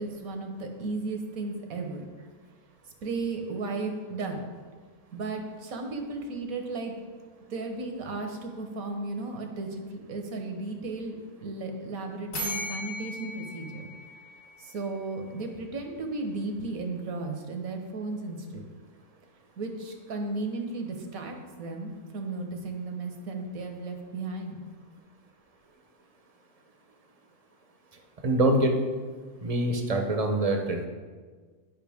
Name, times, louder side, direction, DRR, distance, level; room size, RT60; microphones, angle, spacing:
voice 1, 0.0-2.1 3.0-4.4 5.1-7.0 7.5-13.9 14.6-18.7 19.6-24.7, right 3 dB, 75° right, 4 dB, 1.4 m, -35 dB
sound 1, 12.3-15.1, left 1 dB, 65° left, 2.2 m, -37 dB
voice 2, 28.2-28.8 29.4-30.9, right 1 dB, 35° right, 3 dB, 0.7 m, -24 dB
11.0 x 5.4 x 3.5 m, 1.5 s
omnidirectional pair, 1.5 m